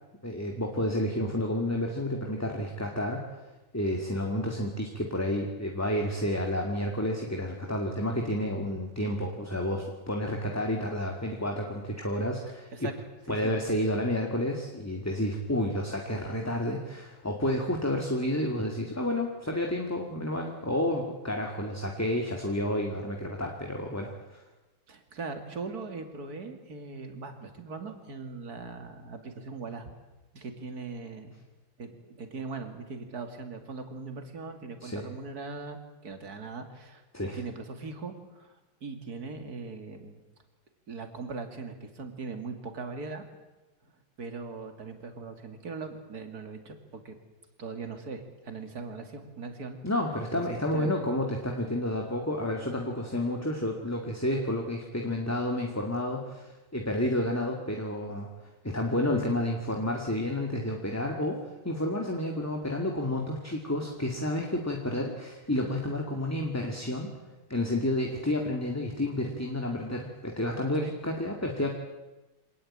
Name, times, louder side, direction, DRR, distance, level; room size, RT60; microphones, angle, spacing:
voice 1, 0.2-3.4 3.7-12.9 13.3-24.4 34.8-35.1 37.1-37.4 49.8-58.3 58.6-67.1 67.5-71.7, left 1 dB, 5° left, 1 dB, 2.0 m, -30 dB
voice 2, 24.9-29.9 30.3-31.3 31.8-37.0 37.3-38.6 38.8-40.2 40.9-43.2 43.8-43.9 44.2-47.2 47.6-49.8 50.3-51.1 70.8-70.9, right 4 dB, 45° right, 6 dB, 3.0 m, -40 dB
26.0 x 19.0 x 8.8 m, 1.1 s
omnidirectional pair, 2.3 m